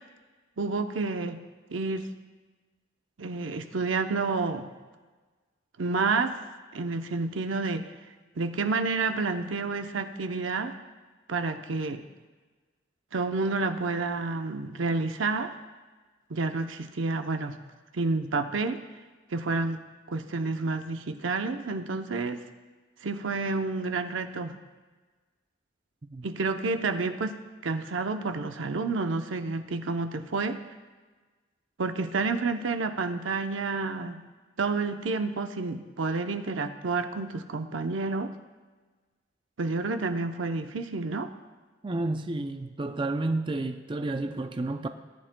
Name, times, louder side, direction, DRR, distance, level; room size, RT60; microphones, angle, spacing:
voice 1, 0.6-1.4 1.7-2.1 3.2-4.7 5.8-6.4 6.7-7.8 8.4-10.7 11.3-12.0 13.1-15.5 16.3-17.6 17.9-18.8 19.3-19.8 20.1-22.4 23.0-24.6 26.2-27.4 27.6-30.6 31.8-34.2 34.6-38.3 39.6-41.3, right 3 dB, 80° right, 0.7 m, -29 dB
voice 2, 41.8-44.9, right 2 dB, 25° right, 0.4 m, -31 dB
18.5 x 10.0 x 2.2 m
head